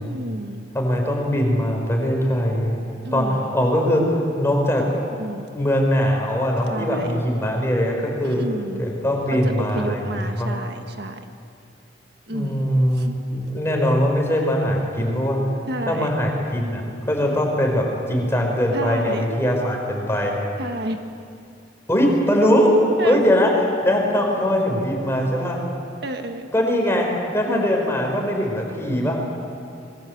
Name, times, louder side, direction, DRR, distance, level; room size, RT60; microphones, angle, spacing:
voice 1, 0.0-0.6 3.0-3.6 4.8-4.9 5.1-5.5 6.7-7.2 8.2-8.8 9.4-11.2 12.3-12.7 12.9-13.9 15.7-16.1 18.7-19.3 20.6-21.0 23.0-23.2 24.7-25.0 26.0-26.5 27.5-27.7, right 1 dB, 60° right, 5 dB, 1.5 m, -31 dB
voice 2, 0.7-2.8 3.1-4.0 4.4-4.8 5.5-8.4 8.8-10.5 12.3-15.4 15.9-20.3 21.9-23.5 23.8-25.6 26.5-29.2, equal, 15° left, 0 dB, 5.1 m, -21 dB
26.5 x 23.0 x 7.9 m, 2.4 s
head